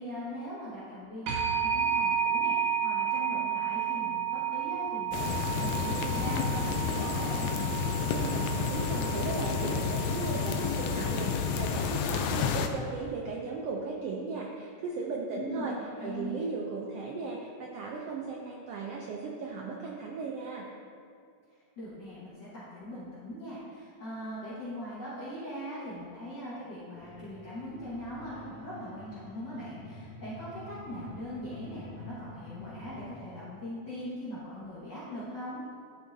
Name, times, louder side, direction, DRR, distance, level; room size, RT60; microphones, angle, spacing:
voice 1, 0.0-7.5 15.3-16.4 21.8-35.6, equal, 40° left, -10 dB, 1.9 m, -41 dB
sound 1, 1.3-11.9, right 8 dB, 70° right, 1.4 m, -32 dB
sound 2, 5.1-12.7, left 6 dB, 85° left, 1.5 m, -30 dB
voice 2, 8.1-15.7 16.0-20.7, right 4 dB, 90° right, -1 dB, 1.3 m, -37 dB
sound 3, 27.0-33.2, left 2 dB, 65° left, 1.6 m, -47 dB
12.0 x 5.8 x 2.7 m, 2.3 s
omnidirectional pair, 3.5 m